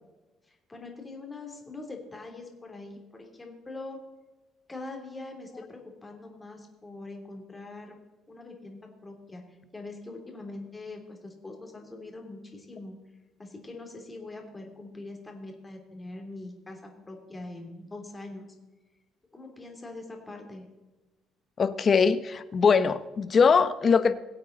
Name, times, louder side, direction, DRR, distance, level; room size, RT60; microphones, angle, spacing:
voice 1, 0.5-4.0 4.7-8.0 8.3-13.0 13.4-18.5 19.3-20.7, left 2 dB, 15° left, 2 dB, 3.0 m, -43 dB
voice 2, 21.6-24.1, left 5 dB, 35° left, 12 dB, 0.9 m, -22 dB
22.0 x 8.4 x 3.9 m, 1.2 s
cardioid pair, 130°, 0 cm